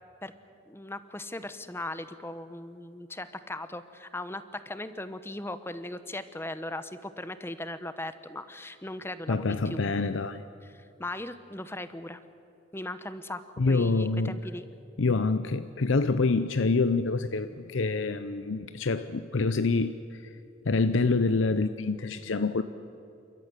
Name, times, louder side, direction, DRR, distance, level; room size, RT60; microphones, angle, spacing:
voice 1, 0.7-9.8 10.6-12.2 12.7-14.6, left 1 dB, 10° left, 12 dB, 0.9 m, -38 dB
voice 2, 9.3-10.4 13.6-14.4 15.0-20.0 20.6-22.6, left 3 dB, 75° left, 11 dB, 0.7 m, -26 dB
29.0 x 13.5 x 10.0 m, 2.8 s
head